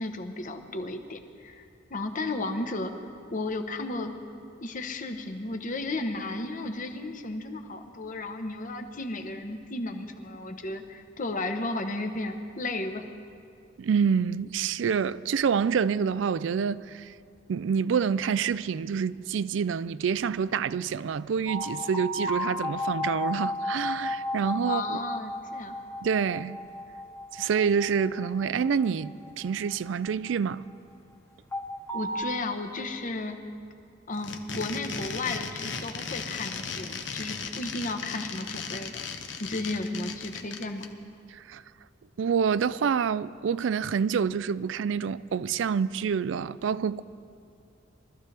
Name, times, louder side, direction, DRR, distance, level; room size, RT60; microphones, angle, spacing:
voice 1, 0.0-4.1 4.6-13.0 24.6-25.8 31.9-33.4 34.1-39.0 39.4-40.9, left 2 dB, 45° left, 1.0 m, -34 dB
voice 2, 13.8-17.1 17.5-25.0 26.0-26.6 27.3-30.6 41.3-41.6 42.2-47.0, right 6 dB, 75° right, 0.4 m, -27 dB
sound 1, 21.5-30.5 31.5-32.2, left 1 dB, 15° left, 1.1 m, -34 dB
sound 2, 34.1-40.9, left 5 dB, 70° left, 1.0 m, -36 dB
23.0 x 13.5 x 3.4 m
head